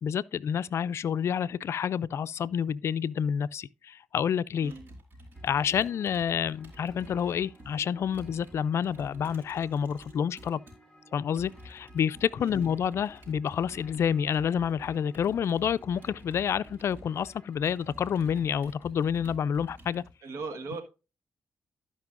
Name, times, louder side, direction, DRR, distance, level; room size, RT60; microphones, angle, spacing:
voice 1, 0.0-4.7 5.4-10.6 11.1-20.0, left 8 dB, 70° left, 0.4 m, -29 dB
voice 2, 4.6-4.9 12.4-12.6 20.2-20.8, right 4 dB, 90° right, 1.5 m, -38 dB
Computer keyboard, 4.7-10.8 11.3-20.1, equal, 45° right, 4.7 m, -50 dB
sound 1, 5.3-18.5, equal, 10° left, 3.1 m, -57 dB
15.5 x 5.3 x 2.5 m
cardioid pair, 60°, 5 cm